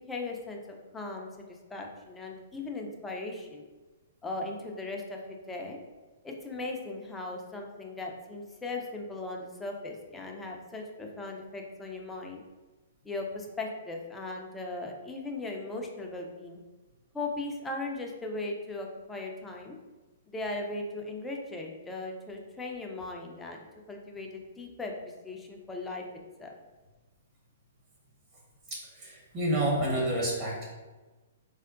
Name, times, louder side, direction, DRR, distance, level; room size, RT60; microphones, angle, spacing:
voice 1, 0.0-3.6 4.2-5.8 6.2-12.4 13.0-16.6 17.1-19.8 20.3-24.9 25.2-26.0 26.4-26.5, left 2 dB, 10° left, 0 dB, 0.5 m, -38 dB
voice 2, 28.7-30.7, right 1 dB, 35° right, -4 dB, 1.1 m, -29 dB
4.4 x 2.0 x 2.5 m, 1.2 s
hypercardioid pair, 130°, 0 cm